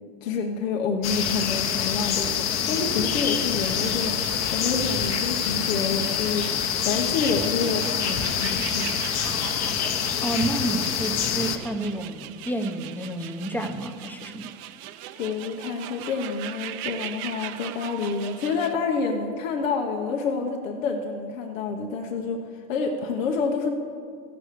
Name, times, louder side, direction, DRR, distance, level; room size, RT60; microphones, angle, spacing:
voice 1, 0.2-8.9 15.2-23.7, left 5 dB, 90° left, 2 dB, 1.0 m, -28 dB
sound 1, 1.0-11.6, left 8 dB, 40° left, 1.0 m, -26 dB
sound 2, 3.6-18.7, right 13 dB, 55° right, 0.6 m, -40 dB
voice 2, 10.2-14.5, right 1 dB, 5° left, 6 dB, 0.7 m, -30 dB
15.0 x 6.0 x 6.6 m, 2.2 s
supercardioid pair, 115°, 38 cm